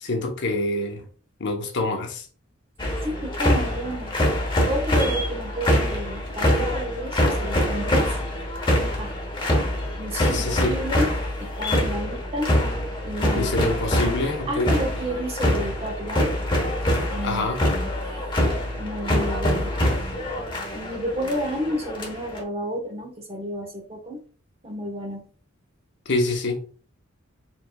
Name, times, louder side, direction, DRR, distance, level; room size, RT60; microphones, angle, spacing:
voice 1, 0.0-1.0 1.4-2.3 10.1-10.7 13.3-14.7 17.2-17.6 26.1-26.6, left 2 dB, 55° left, 0.8 m, -26 dB
sound 1, 2.8-22.4, left 1 dB, 25° left, 1.0 m, -25 dB
voice 2, 3.0-4.1 4.6-8.2 9.0-9.1 10.0-11.1 11.4-12.5 13.0-13.5 14.5-16.3 17.0-17.9 18.8-19.7 20.7-24.2 24.6-25.2, equal, 30° right, 1.1 m, -31 dB
4.6 x 3.8 x 2.2 m
head